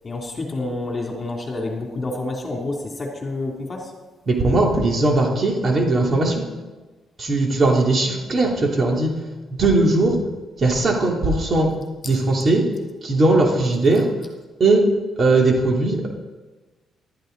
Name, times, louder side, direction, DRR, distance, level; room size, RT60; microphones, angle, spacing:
voice 1, 0.0-3.9, left 2 dB, 30° left, 0 dB, 2.9 m, -28 dB
voice 2, 4.3-6.5 7.2-9.1 9.5-10.2 10.6-11.7 12.0-12.6 13.0-14.1 14.6-14.9 15.2-16.1, right 2 dB, 40° right, 0 dB, 2.8 m, -19 dB
14.0 x 12.5 x 4.0 m, 1.2 s
cardioid pair, 90°, 0 cm